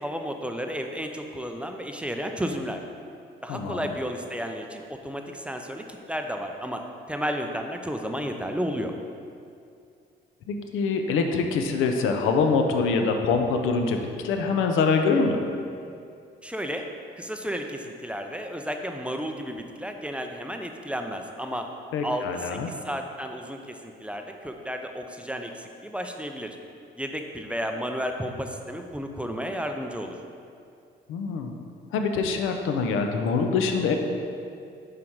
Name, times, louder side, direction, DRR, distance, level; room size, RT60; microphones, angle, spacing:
voice 1, 0.0-2.8 3.4-8.9 16.4-16.8 17.2-21.7 22.0-26.6 27.0-30.1, equal, 5° right, 4 dB, 0.5 m, -32 dB
voice 2, 3.5-3.9 10.5-15.4 21.9-22.7 31.1-31.5 31.9-34.0, left 4 dB, 85° left, 5 dB, 0.6 m, -24 dB
5.6 x 5.0 x 4.6 m, 2.4 s
cardioid pair, 90°, 20 cm